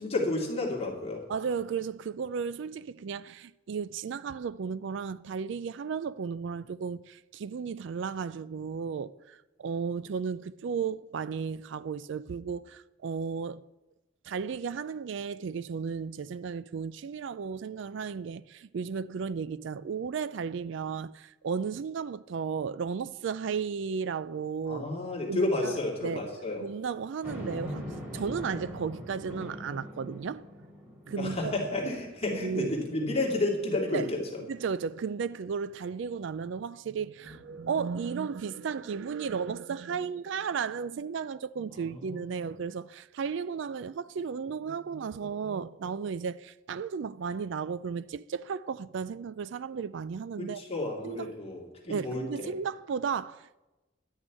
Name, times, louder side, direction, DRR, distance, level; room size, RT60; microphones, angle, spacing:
voice 1, 0.0-1.2 24.7-26.6 31.2-34.2 41.7-42.3 50.4-52.5, left 2 dB, 35° left, 2.6 m, -31 dB
voice 2, 1.3-13.6 14.2-24.9 25.3-26.2 26.6-30.4 31.1-31.5 32.3-32.8 33.9-34.1 34.5-50.6 51.0-51.3 51.9-53.5, right 6 dB, 65° right, 0.4 m, -34 dB
sound 1, 27.2-32.8 33.3-33.4 37.2-38.3, equal, 10° right, 3.3 m, -43 dB
12.0 x 6.2 x 9.2 m
head